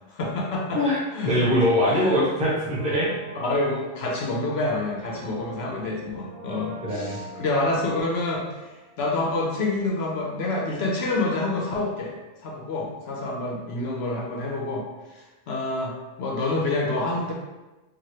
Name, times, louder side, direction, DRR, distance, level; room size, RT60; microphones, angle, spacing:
voice 1, 0.1-0.8 1.1-1.5 1.9-2.2 3.3-12.1 12.4-14.8 15.1-17.3, left 2 dB, 65° left, -1 dB, 0.7 m, -27 dB
voice 2, 1.2-3.1 6.8-7.2, equal, 10° right, -7 dB, 0.6 m, -22 dB
Brass instrument, 2.5-9.3 9.6-9.7, right 3 dB, 85° right, 1.1 m, -43 dB
3.0 x 2.4 x 2.7 m, 1.1 s
omnidirectional pair, 1.3 m